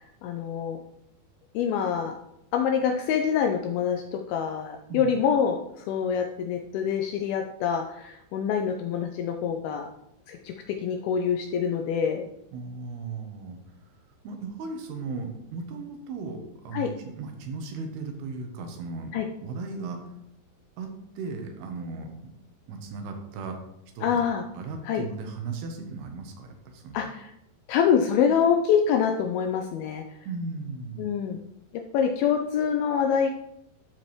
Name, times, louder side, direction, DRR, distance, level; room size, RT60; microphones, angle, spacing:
voice 1, 0.2-0.8 1.6-2.2 2.5-9.9 10.3-10.5 10.8-12.2 16.7-16.9 19.1-19.3 24.0-24.4 24.8-25.0 26.9-27.3 27.7-30.0 31.0-31.4 31.9-33.3, left 7 dB, 80° left, 4 dB, 2.2 m, -25 dB
voice 2, 12.5-13.6 14.2-19.2 19.4-20.1 20.8-22.3 22.7-23.6 24.0-24.2 24.5-27.1 30.2-31.1, right 4 dB, 80° right, 4 dB, 2.9 m, -36 dB
12.5 x 4.5 x 3.1 m, 0.80 s
omnidirectional pair, 4.7 m